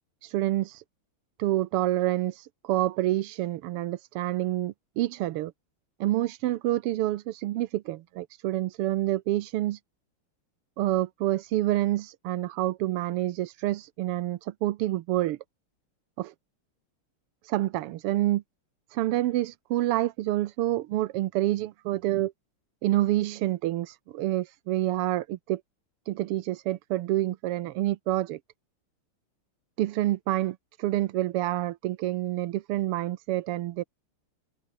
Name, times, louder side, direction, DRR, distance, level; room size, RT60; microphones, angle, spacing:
voice 1, 0.2-0.8 1.4-5.5 6.0-9.8 10.8-15.4 16.2-16.3 17.4-18.4 18.9-22.3 22.8-25.6 26.1-28.4 29.8-33.8, right 15 dB, 90° right, 1.7 m, -28 dB
omnidirectional pair, 2.4 m